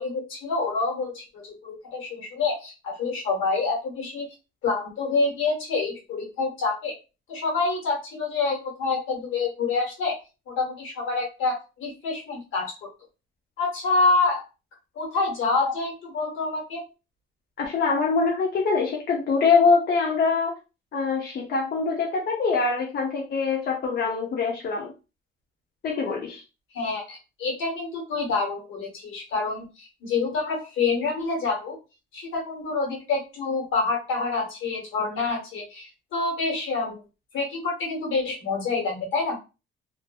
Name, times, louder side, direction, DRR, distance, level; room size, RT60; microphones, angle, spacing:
voice 1, 0.0-4.3 4.6-6.9 7.3-10.1 10.5-12.9 13.6-14.4 14.9-16.8 26.7-31.8 32.1-37.0 37.3-39.4, left 3 dB, 85° left, -1 dB, 1.3 m, -27 dB
voice 2, 17.6-20.5 20.9-24.9 25.8-26.4, left 4 dB, 55° left, -1 dB, 0.6 m, -24 dB
2.6 x 2.5 x 2.3 m, 0.29 s
cardioid pair, 90°, 20 cm